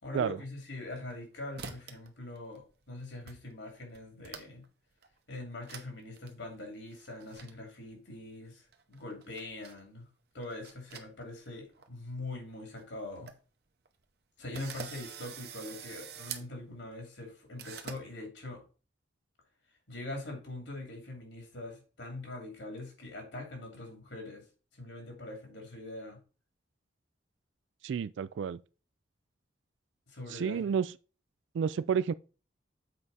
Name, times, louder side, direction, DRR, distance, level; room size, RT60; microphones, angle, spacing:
voice 1, 0.0-4.6 5.3-10.1 10.3-13.3 14.4-18.6 19.9-24.4 24.7-26.2 30.1-30.7, left 2 dB, 85° left, 2.8 m, -43 dB
sound 1, 0.6-1.2 1.6-2.1 2.4-2.9 3.3-3.4 3.7-4.7 5.0-5.1 5.7-5.9 6.2-6.3 6.9-7.5 8.7-9.8 10.4-11.5 11.7-11.9 12.4-12.5 12.8-12.9 13.1-13.3 13.9-14.0 14.5-16.5 17.6-18.0, right 7 dB, 55° right, 0.8 m, -45 dB
voice 2, 27.8-28.6 30.3-30.9 31.5-32.1, right 7 dB, 85° right, 0.3 m, -30 dB
7.7 x 4.7 x 4.1 m
head